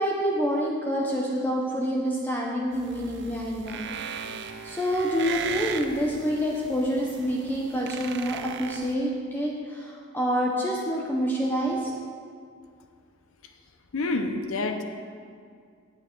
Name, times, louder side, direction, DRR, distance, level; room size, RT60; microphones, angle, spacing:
voice 1, 0.0-3.9 4.2-4.3 4.6-11.9, equal, 10° left, -3 dB, 0.7 m, -27 dB
sound 1, 2.7-9.0, right 6 dB, 55° right, 0.5 m, -37 dB
voice 2, 13.9-14.8, left 2 dB, 70° left, 6 dB, 0.6 m, -27 dB
9.0 x 8.8 x 4.5 m, 2.2 s
head